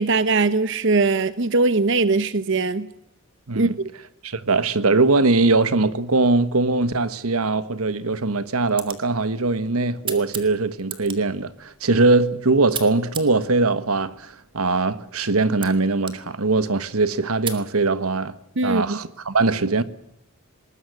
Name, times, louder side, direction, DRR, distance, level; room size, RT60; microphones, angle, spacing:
voice 1, 0.0-2.9 3.6-3.9 18.6-19.0, right 3 dB, 60° right, 0.9 m, -20 dB
voice 2, 4.2-18.3 18.6-19.8, right 3 dB, 90° right, 1.3 m, -21 dB
sound 1, 8.5-17.7, right 7 dB, 25° right, 2.1 m, -39 dB
20.5 x 19.5 x 9.6 m
head